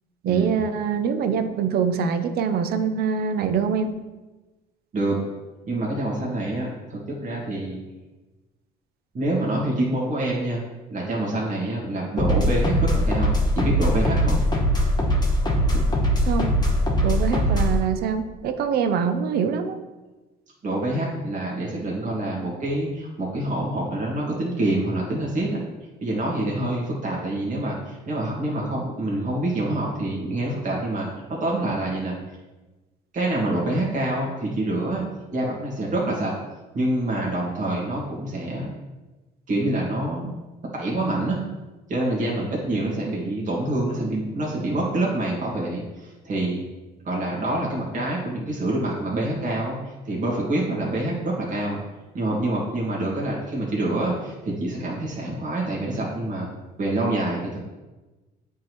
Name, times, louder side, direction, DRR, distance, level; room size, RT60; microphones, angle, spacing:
voice 1, 0.2-3.9 16.3-16.5 17.0-19.8, right 6 dB, 65° right, 9 dB, 0.6 m, -24 dB
voice 2, 5.7-7.8 9.1-10.6 10.9-14.4 15.7-15.8 20.6-25.6 26.0-32.2 33.1-35.0 35.3-36.3 36.7-38.7 39.5-40.3 40.7-41.4 41.9-46.6 47.1-49.8 50.0-51.8 52.1-56.5 56.8-57.6, right 1 dB, 50° right, -4 dB, 2.0 m, -26 dB
sound 1, 12.2-17.8, equal, 25° left, 1.2 m, -21 dB
9.1 x 3.7 x 3.1 m, 1.1 s
cardioid pair, 110°, 17 cm